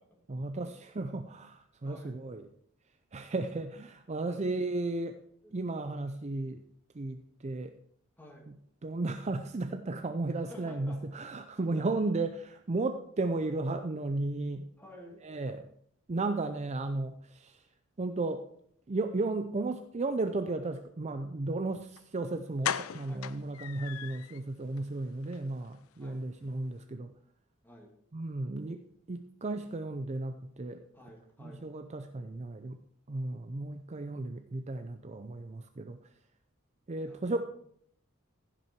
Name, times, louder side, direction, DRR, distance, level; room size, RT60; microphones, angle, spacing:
voice 1, 0.3-2.5 3.1-5.2 5.5-6.6 6.9-7.7 8.5-8.6 8.8-14.7 15.2-15.7 16.1-17.6 18.0-18.4 18.9-27.1 28.1-30.8 31.4-32.8 33.1-36.0 36.9-37.5, right 2 dB, 35° right, 8 dB, 0.5 m, -34 dB
voice 2, 8.2-8.5 10.5-11.0 11.7-11.8 14.8-15.2 23.1-23.4 26.0-26.2 27.6-27.9 30.9-31.7 37.0-37.5, equal, 10° left, -1 dB, 2.5 m, -52 dB
sound 1, 22.0-22.1 22.6-24.4 24.8-24.9 25.2-25.4 25.6-25.7, left 9 dB, 90° left, 0.5 m, -36 dB
15.0 x 6.1 x 4.6 m, 0.67 s
head